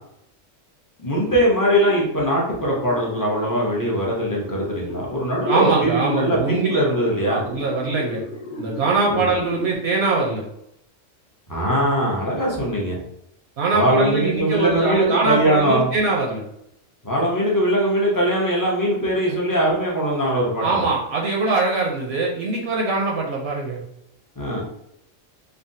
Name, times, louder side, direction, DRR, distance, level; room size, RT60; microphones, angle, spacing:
voice 1, 1.0-7.4 9.1-9.2 11.5-13.0 13.7-15.9 17.0-20.8 24.4-24.6, right 1 dB, 30° left, -3 dB, 0.4 m, -21 dB
sound 1, 1.2-9.8, left 2 dB, 45° left, 0.8 m, -36 dB
voice 2, 5.5-6.8 7.3-8.2 8.6-10.5 13.6-16.4 20.6-23.8, right 3 dB, 65° right, -1 dB, 0.7 m, -22 dB
3.4 x 2.0 x 2.6 m, 0.77 s
omnidirectional pair, 1.4 m